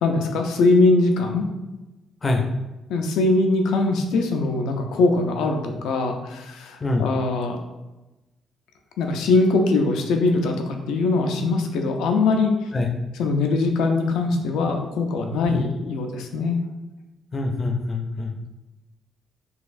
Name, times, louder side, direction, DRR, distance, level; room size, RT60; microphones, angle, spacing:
voice 1, 0.0-1.4 2.9-7.6 9.0-12.7 13.2-16.6, left 3 dB, 90° left, 4 dB, 0.4 m, -21 dB
voice 2, 6.8-7.1 12.7-12.9 15.5-15.7 17.3-18.3, left 3 dB, 35° left, 3 dB, 0.5 m, -24 dB
3.9 x 2.4 x 2.5 m, 1.1 s
cardioid pair, 90°, 0 cm